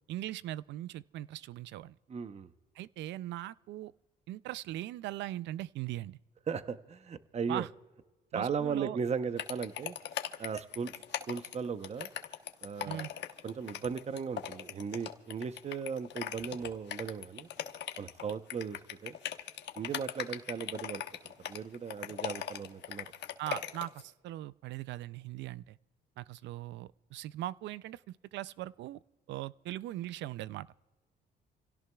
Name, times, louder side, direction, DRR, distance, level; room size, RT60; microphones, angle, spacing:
voice 1, 0.1-2.0 2.8-3.9 4.3-6.2 7.5-7.7 8.3-9.0 12.9-13.1 23.4-25.8 26.2-29.0 29.3-30.7, right 14 dB, 80° right, 19 dB, 0.4 m, -40 dB
voice 2, 2.1-2.5 6.5-7.7 8.3-10.0 10.4-12.1 12.6-13.1 13.4-17.5 18.0-19.2 19.8-21.0 21.4-23.1, right 6 dB, 35° right, 11 dB, 0.8 m, -37 dB
sound 1, 9.4-24.0, left 10 dB, 75° left, 1.0 m, -39 dB
28.5 x 17.0 x 2.3 m, 1.2 s
cardioid pair, 90°, 18 cm